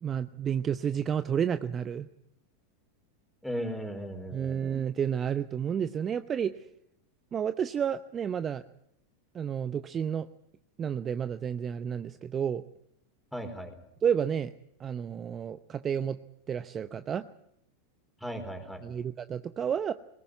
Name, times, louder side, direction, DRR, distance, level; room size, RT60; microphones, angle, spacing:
voice 1, 0.0-2.1 4.3-6.7 7.3-8.6 9.3-10.3 10.8-12.6 14.0-14.5 14.8-16.2 16.5-17.2 18.8-19.9, right 8 dB, 30° right, 13 dB, 0.8 m, -31 dB
voice 2, 3.4-4.7 13.3-13.7 18.2-18.8, equal, ahead, 6 dB, 4.4 m, -36 dB
21.0 x 18.5 x 9.5 m, 0.76 s
hypercardioid pair, 100°, 0 cm